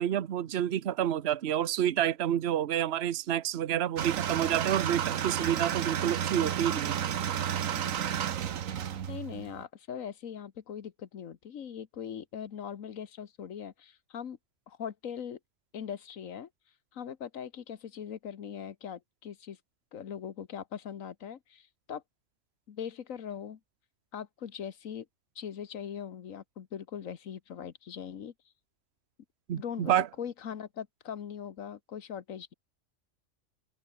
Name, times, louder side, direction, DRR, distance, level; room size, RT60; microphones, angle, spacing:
voice 1, 0.0-7.0 29.5-30.1, right 10 dB, 60° right, 1.0 m, -29 dB
sound 1, 4.0-9.6, right 9 dB, 90° right, 1.4 m, -32 dB
voice 2, 8.8-14.4 14.7-15.4 15.7-16.5 16.9-19.6 19.9-22.0 22.7-23.6 24.1-25.1 25.4-28.3 29.5-32.5, left 8 dB, 85° left, 1.6 m, -41 dB
omnidirectional pair, 1.3 m